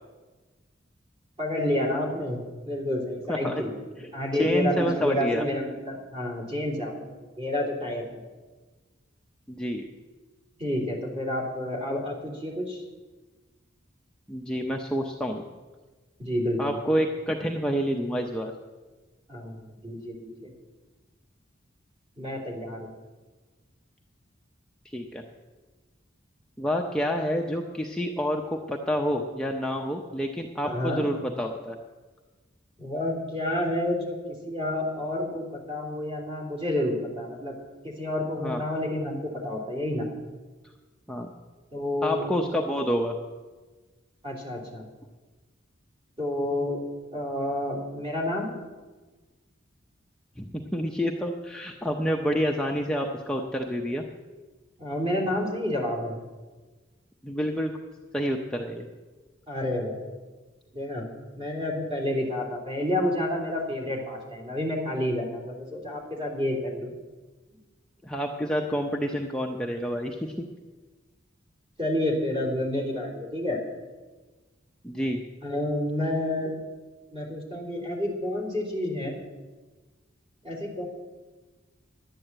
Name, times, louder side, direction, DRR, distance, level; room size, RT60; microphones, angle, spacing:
voice 1, 1.4-3.8 4.1-7.1 7.4-8.1 10.6-12.8 16.2-16.8 19.3-20.5 22.2-22.9 30.6-31.0 32.8-37.5 37.8-40.1 41.7-42.3 44.2-44.9 46.2-46.8 47.1-48.5 54.8-56.2 59.5-60.1 60.7-61.1 61.4-66.9 71.8-73.6 75.4-76.5 77.1-79.2 80.4-80.9, left 1 dB, 30° right, -3 dB, 3.2 m, -29 dB
voice 2, 3.3-3.6 4.3-5.5 9.5-9.8 14.3-15.4 16.6-18.5 24.9-25.2 26.6-31.8 38.4-38.6 41.1-41.3 42.0-43.1 50.4-54.0 57.2-57.7 58.1-58.9 68.0-70.4 74.8-75.2, equal, 5° left, 0 dB, 0.6 m, -28 dB
11.0 x 9.1 x 7.9 m, 1.3 s
head